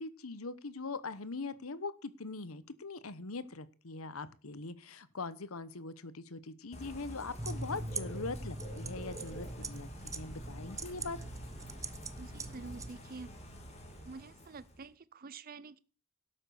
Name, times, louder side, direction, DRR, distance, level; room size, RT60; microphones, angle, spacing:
voice 1, 0.0-11.2, left 3 dB, 85° left, 16 dB, 1.1 m, -42 dB
Bird / Rain, 6.7-14.9, equal, 30° left, 3.4 m, -49 dB
sound 1, 7.4-12.9, right 2 dB, 15° right, 0.8 m, -42 dB
voice 2, 12.2-13.3 14.0-15.8, right 4 dB, 45° right, 17 dB, 0.6 m, -48 dB
12.0 x 8.9 x 6.5 m, 0.38 s
head